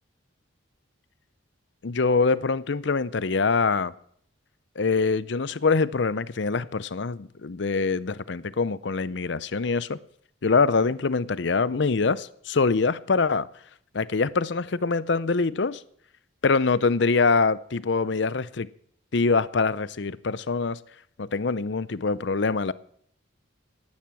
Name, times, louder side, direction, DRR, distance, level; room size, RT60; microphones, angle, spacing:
voice 1, 1.8-3.9 4.8-10.0 10.4-13.5 13.9-15.8 16.4-18.7 19.1-20.8 21.2-22.7, left 4 dB, 60° left, 17 dB, 0.6 m, -24 dB
17.0 x 11.5 x 6.1 m, 0.66 s
head